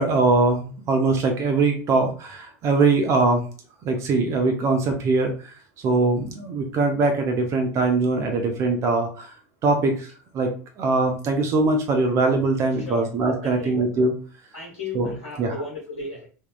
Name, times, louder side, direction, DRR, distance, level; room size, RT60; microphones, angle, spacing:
voice 1, 0.0-3.5 3.8-5.5 5.8-9.3 9.6-10.1 10.3-10.5 10.8-14.1 14.9-15.5, right 3 dB, 35° right, 4 dB, 0.5 m, -22 dB
voice 2, 14.5-16.2, left 3 dB, 65° left, -3 dB, 1.1 m, -35 dB
3.4 x 2.2 x 2.2 m, 0.39 s
figure-of-eight pair, 75°, 8 cm